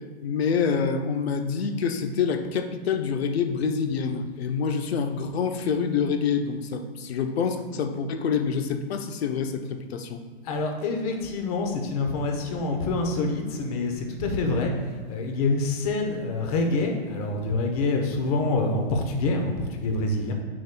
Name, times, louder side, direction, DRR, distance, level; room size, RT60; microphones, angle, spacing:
voice 1, 0.2-10.2, left 6 dB, 75° left, 7 dB, 0.8 m, -26 dB
voice 2, 10.4-14.7 15.1-20.3, left 3 dB, 35° left, 3 dB, 0.9 m, -26 dB
9.0 x 6.1 x 2.3 m, 1.5 s
hypercardioid pair, 155°, 32 cm